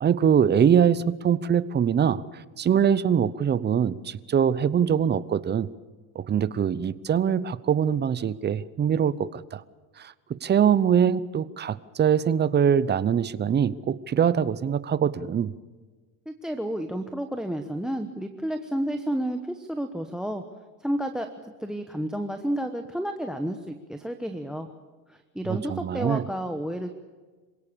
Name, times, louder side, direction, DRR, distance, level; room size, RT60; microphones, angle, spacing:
voice 1, 0.0-2.2 2.6-5.7 6.1-9.6 10.0-10.1 10.4-15.5 25.5-26.2, right 8 dB, 25° right, 17 dB, 0.8 m, -23 dB
voice 2, 16.3-20.4 20.8-21.3 21.6-24.7 25.1-26.9, right 1 dB, ahead, 8 dB, 1.1 m, -31 dB
26.5 x 17.5 x 6.9 m, 1.3 s
supercardioid pair, 125°, 43 cm